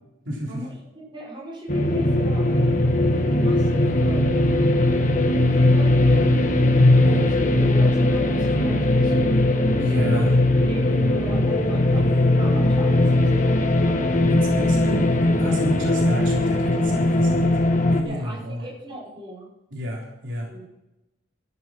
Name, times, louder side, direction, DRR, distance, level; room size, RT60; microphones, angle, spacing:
voice 1, 0.3-0.7 9.8-10.3 14.3-15.1 15.4-17.6 17.9-18.7 19.7-20.5, equal, 75° right, -3 dB, 3.7 m, -29 dB
voice 2, 1.1-4.4 5.5-6.3 7.0-10.2 10.7-12.0 12.4-14.3 18.0-19.5 20.4-20.6, equal, 25° right, -5 dB, 5.7 m, -38 dB
sound 1, 1.7-18.0, left 1 dB, 40° left, 1.2 m, -19 dB
13.0 x 9.7 x 5.8 m, 0.93 s
head